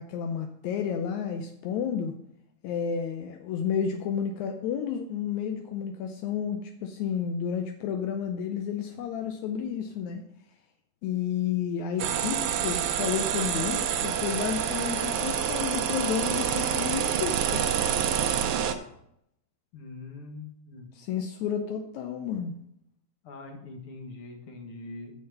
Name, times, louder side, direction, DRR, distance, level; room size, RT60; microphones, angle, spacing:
voice 1, 0.0-2.2 2.6-10.2 11.0-17.6 21.0-22.5, left 8 dB, 80° left, 5 dB, 2.0 m, -31 dB
sound 1, 12.0-18.7, right 8 dB, 80° right, 1.2 m, -27 dB
voice 2, 19.7-20.9 23.2-25.1, left 3 dB, 50° left, 2 dB, 2.3 m, -43 dB
8.3 x 6.7 x 6.7 m, 0.77 s
omnidirectional pair, 3.3 m